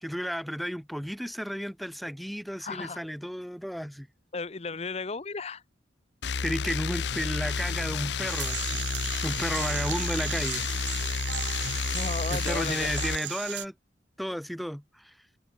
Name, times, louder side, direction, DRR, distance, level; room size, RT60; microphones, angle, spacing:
voice 1, 0.0-4.1 6.4-8.8 9.2-10.7 12.3-13.7 14.2-15.2, equal, ahead, 0.3 m, -33 dB
voice 2, 2.6-3.0 4.3-5.6 11.9-12.9, left 4 dB, 35° left, 0.7 m, -34 dB
sound 1, 6.2-13.2, left 5 dB, 70° left, 0.7 m, -31 dB
sound 2, 8.3-13.7, right 12 dB, 85° right, 1.4 m, -36 dB
head